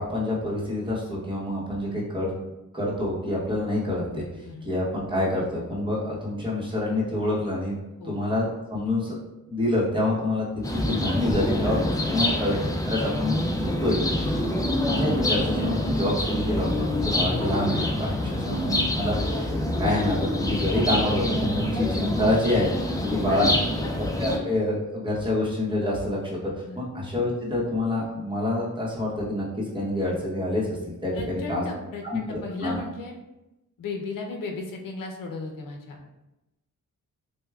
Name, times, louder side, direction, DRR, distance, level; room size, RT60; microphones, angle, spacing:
voice 1, 0.0-2.3 2.7-4.2 4.6-7.8 8.0-9.2 9.5-11.8 12.1-12.6 12.9-14.5 14.8-22.7 23.1-23.5 24.2-26.4 26.8-29.5 29.7-31.6 32.0-32.8, left 1 dB, 15° right, -5 dB, 0.9 m, -27 dB
sound 1, 10.6-24.4, left 1 dB, 10° left, 0.4 m, -26 dB
voice 2, 12.1-12.6 18.1-18.6 22.9-23.8 26.6-26.9 31.1-33.2 33.8-36.0, left 3 dB, 80° left, 2 dB, 0.7 m, -36 dB
6.4 x 2.2 x 2.3 m, 0.97 s
wide cardioid pair, 165°, 33 cm